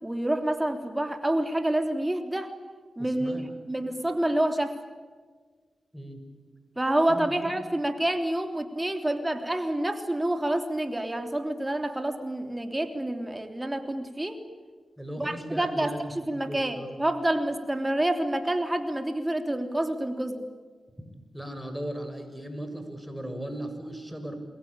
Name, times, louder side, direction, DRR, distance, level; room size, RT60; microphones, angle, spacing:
voice 1, 0.0-2.5 3.0-3.4 3.7-4.8 6.8-14.4 15.2-15.9 16.3-20.5, right 1 dB, 20° right, 6 dB, 3.3 m, -28 dB
voice 2, 3.0-3.5 3.8-3.9 5.9-6.2 7.1-7.5 15.0-17.0 21.3-24.4, right 1 dB, 5° right, 7 dB, 7.2 m, -37 dB
27.5 x 22.5 x 8.9 m, 1.5 s
cardioid pair, 45°, 0 cm